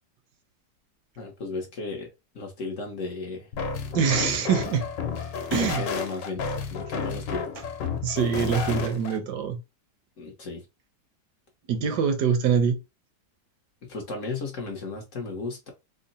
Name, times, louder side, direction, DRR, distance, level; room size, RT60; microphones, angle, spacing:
voice 1, 1.2-3.5 5.5-6.4 6.7-7.5 10.2-10.6 13.8-15.7, left 3 dB, 55° left, 1.1 m, -35 dB
sound 1, 3.5-9.2, left 5 dB, 85° left, 1.4 m, -31 dB
voice 2, 3.9-4.8 5.5-5.8 8.0-9.6 11.7-12.8, right 6 dB, 75° right, 1.3 m, -24 dB
3.7 x 2.1 x 3.9 m
omnidirectional pair, 1.9 m